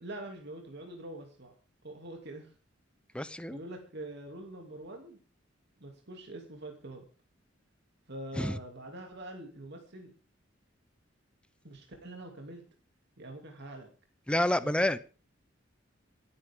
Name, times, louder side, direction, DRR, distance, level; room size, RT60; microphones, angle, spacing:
voice 1, 0.0-1.5 1.8-2.5 3.5-5.2 5.8-7.0 8.1-10.1 11.6-12.6 13.2-13.9 14.6-15.0, right 1 dB, 60° right, 2 dB, 2.7 m, -44 dB
voice 2, 3.1-3.6 8.4-8.6 14.3-15.0, left 1 dB, 5° left, 13 dB, 0.7 m, -28 dB
27.0 x 9.7 x 3.7 m, 0.36 s
head